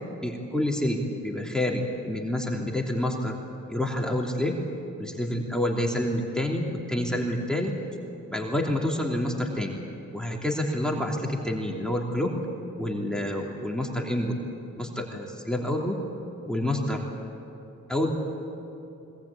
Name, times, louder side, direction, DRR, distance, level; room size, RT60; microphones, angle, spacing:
voice 1, 0.2-3.3 3.7-4.5 5.0-7.7 8.3-9.7 10.1-12.3 12.8-14.4 14.8-16.0 16.5-17.0 17.9-18.1, left 1 dB, ahead, 0 dB, 3.1 m, -28 dB
22.0 x 19.5 x 8.6 m, 2.8 s
cardioid pair, 70°, 31 cm